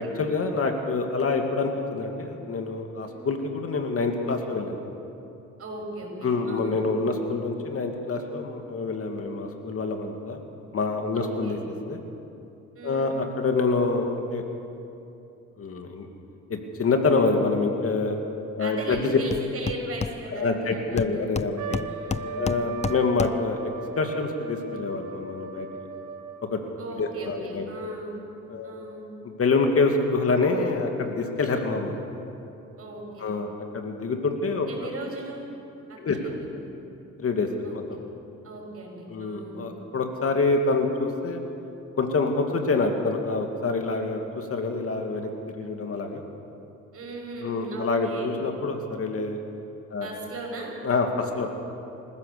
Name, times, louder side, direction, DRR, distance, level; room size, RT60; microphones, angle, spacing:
voice 1, 0.0-4.8 6.2-10.4 10.7-11.6 11.9-12.0 12.8-14.4 15.6-16.1 16.5-18.2 18.6-19.2 20.3-21.8 22.4-23.7 24.0-25.7 26.5-26.6 27.0-27.7 28.5-29.0 29.2-32.0 33.2-34.7 36.0-36.3 37.2-37.8 39.1-41.4 42.0-46.2 47.4-49.4 49.9-50.1 50.8-51.5, left 3 dB, 50° left, 4 dB, 2.4 m, -26 dB
voice 2, 3.1-3.4 5.6-6.9 11.1-11.6 12.7-13.2 18.6-21.3 21.9-22.6 26.8-28.2 28.6-29.1 32.8-33.3 34.7-35.5 35.9-36.7 37.6-37.7 38.4-39.6 46.9-48.3 49.9-50.7, right 2 dB, 50° right, 0 dB, 6.2 m, -38 dB
Hammer, 18.9-19.0 19.3-20.6 21.0-23.6, left 5 dB, 20° left, 0.5 m, -32 dB
Trumpet, 21.6-26.6, right 4 dB, 75° right, 1.6 m, -37 dB
26.5 x 15.0 x 6.9 m, 2.8 s
cardioid pair, 90°, 30 cm